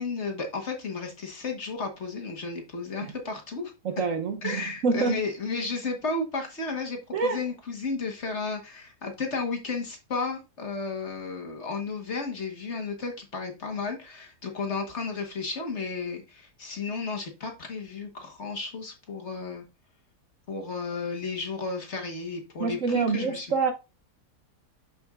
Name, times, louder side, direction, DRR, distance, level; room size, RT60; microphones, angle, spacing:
voice 1, 0.0-3.7 4.4-19.6 20.5-23.6, left 4 dB, 45° left, 1.5 m, -33 dB
voice 2, 3.8-5.2 7.1-7.4 22.6-23.7, right 4 dB, 60° right, 1.1 m, -26 dB
7.0 x 6.7 x 2.4 m
omnidirectional pair, 1.8 m